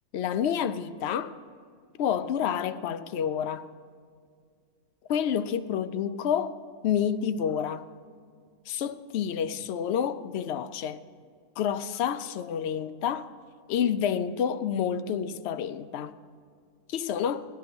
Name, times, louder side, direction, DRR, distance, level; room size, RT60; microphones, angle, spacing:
voice 1, 0.1-1.3 2.0-3.7 5.1-6.6 6.8-7.9 8.7-11.0 11.6-13.3 13.7-16.2 16.9-17.5, left 8 dB, 70° left, 0.6 m, -29 dB
16.0 x 11.5 x 5.2 m
omnidirectional pair, 1.6 m